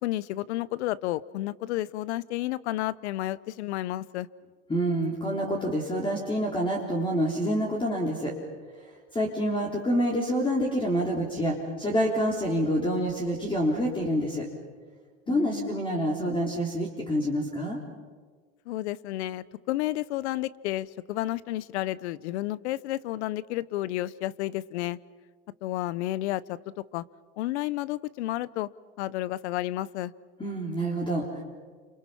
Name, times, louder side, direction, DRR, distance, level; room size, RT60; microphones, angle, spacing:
voice 1, 0.0-4.3 15.3-15.7 18.7-25.0 25.6-27.0 27.4-28.7 29.0-30.1, left 15 dB, 75° left, 20 dB, 0.9 m, -31 dB
voice 2, 4.7-8.3 8.8-14.5 15.3-17.8 30.4-31.4, equal, 15° left, -1 dB, 3.6 m, -27 dB
29.0 x 27.5 x 5.7 m, 1.5 s
supercardioid pair, 115°, 34 cm